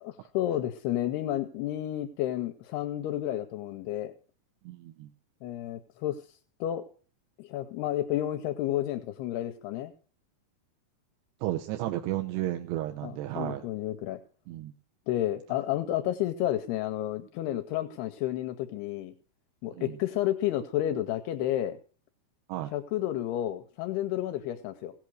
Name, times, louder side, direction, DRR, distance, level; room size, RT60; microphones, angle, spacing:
voice 1, 0.0-4.1 5.4-6.9 7.4-9.9 13.0-14.2 15.1-19.1 19.6-21.8 22.7-24.9, left 13 dB, 80° left, 9 dB, 2.7 m, -31 dB
voice 2, 4.6-5.1 11.4-13.7 14.5-14.7 19.8-20.0 22.5-22.7, right 14 dB, 85° right, 4 dB, 3.0 m, -33 dB
17.0 x 8.2 x 6.3 m, 0.41 s
omnidirectional pair, 4.8 m